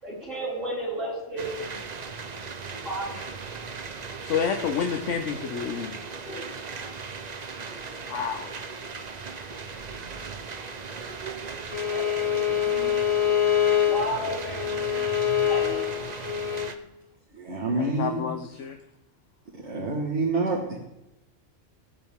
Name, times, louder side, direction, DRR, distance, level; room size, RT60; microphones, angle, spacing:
voice 1, 0.0-1.8 2.8-3.3 6.2-6.5 11.9-13.2 13.8-15.1 15.4-15.8, right 1 dB, 90° right, -6 dB, 5.0 m, -34 dB
sound 1, 1.4-16.8, right 5 dB, 40° right, 0.8 m, -38 dB
voice 2, 4.2-5.9 8.1-8.5 17.7-18.8, left 7 dB, 75° left, 5 dB, 1.1 m, -29 dB
voice 3, 9.1-9.8 17.3-18.3 19.6-20.8, right 2 dB, 65° right, -3 dB, 1.9 m, -29 dB
Bowed string instrument, 11.7-16.7, left 9 dB, 35° left, 0.9 m, -25 dB
18.5 x 9.0 x 3.6 m, 0.90 s
omnidirectional pair, 1.3 m